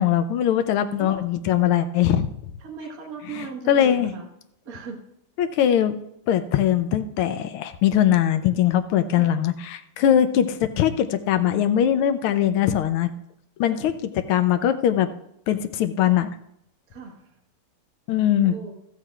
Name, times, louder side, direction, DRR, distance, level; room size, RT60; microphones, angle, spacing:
voice 1, 0.0-2.3 3.4-4.1 5.4-5.9 6.3-13.1 13.6-15.1 15.5-16.3 18.1-18.6, left 10 dB, 75° left, 9 dB, 1.6 m, -21 dB
voice 2, 2.6-4.3 4.7-5.0 9.1-9.3 13.6-13.9 16.9-17.3 18.4-18.7, right 4 dB, 45° right, 0 dB, 2.0 m, -38 dB
14.0 x 13.5 x 2.4 m, 0.78 s
omnidirectional pair, 2.4 m